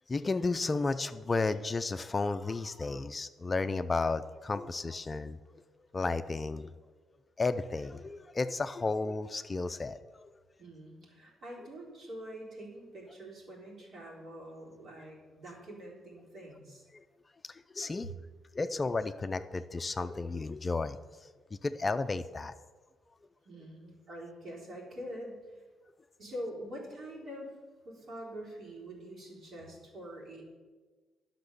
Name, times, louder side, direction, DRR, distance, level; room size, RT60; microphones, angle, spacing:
voice 1, 0.1-5.4 5.9-6.7 7.4-10.0 16.9-17.0 17.7-18.1 18.5-21.0 21.6-22.5, left 3 dB, 30° left, 11 dB, 0.4 m, -32 dB
voice 2, 10.6-16.8 18.0-18.1 23.5-25.6 26.2-27.6 27.8-30.4, equal, 60° right, -3 dB, 3.8 m, -45 dB
10.5 x 6.0 x 6.6 m, 1.4 s
cardioid pair, 90°, 0 cm